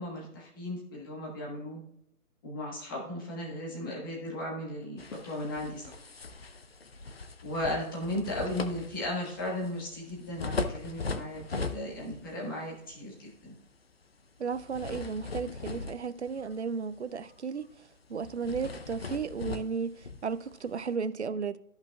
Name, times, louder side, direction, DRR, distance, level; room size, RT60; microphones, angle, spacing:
voice 1, 0.0-1.8 2.4-5.9 7.4-13.1 13.4-13.5, left 1 dB, 15° left, 1.2 m, -36 dB
sound 1, 5.0-12.3 12.7-13.0 14.5-16.8 17.1-17.3 17.6-17.7 18.2-20.9, left 3 dB, 45° left, 0.6 m, -39 dB
voice 2, 14.4-17.7 18.1-21.6, right 5 dB, 50° right, 0.5 m, -34 dB
13.5 x 5.6 x 2.3 m
hypercardioid pair, 165°, 44 cm